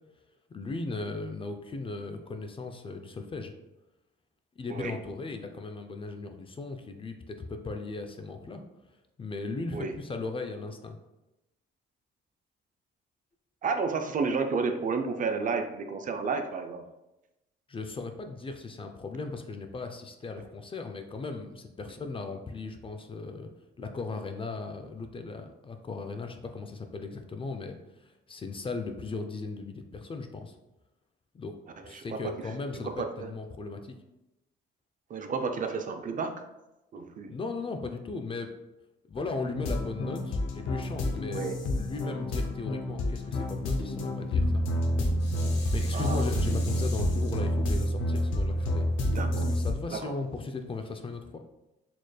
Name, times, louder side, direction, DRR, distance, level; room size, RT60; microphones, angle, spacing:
voice 1, 0.5-3.5 4.6-8.6 9.2-11.0 17.7-23.5 23.8-30.6 31.3-31.5 31.8-33.9 37.3-38.5 39.1-44.7 45.7-48.9 49.3-51.4, left 3 dB, 25° left, 5 dB, 0.4 m, -37 dB
voice 2, 13.6-16.8 31.8-32.2 32.8-33.3 35.1-36.5 36.9-37.3 41.3-41.6 45.9-46.3 49.0-49.5 49.9-50.1, right 4 dB, 40° right, 6 dB, 0.4 m, -31 dB
sound 1, 39.5-49.7, left 1 dB, 85° left, 0.6 m, -29 dB
Dishes pots and pans, 44.6-49.9 50.4-50.5, left 3 dB, 60° left, 0.9 m, -45 dB
4.2 x 3.1 x 2.3 m, 0.96 s
cardioid pair, 90°, 20 cm